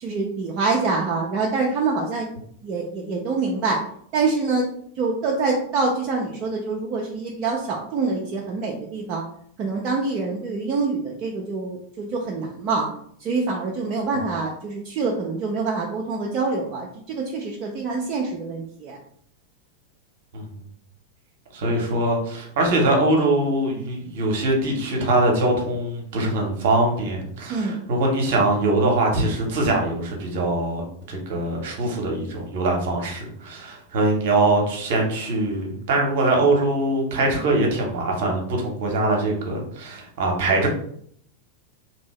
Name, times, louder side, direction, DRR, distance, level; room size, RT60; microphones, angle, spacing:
voice 1, 0.0-2.3 2.6-3.9 4.1-4.7 5.0-9.2 9.6-12.9 13.2-19.0 27.5-27.8, right 4 dB, 35° right, -1 dB, 0.5 m, -25 dB
voice 2, 21.5-40.7, right 2 dB, 55° right, 0 dB, 0.9 m, -22 dB
2.8 x 2.6 x 3.1 m, 0.65 s
figure-of-eight pair, 90°, 0 cm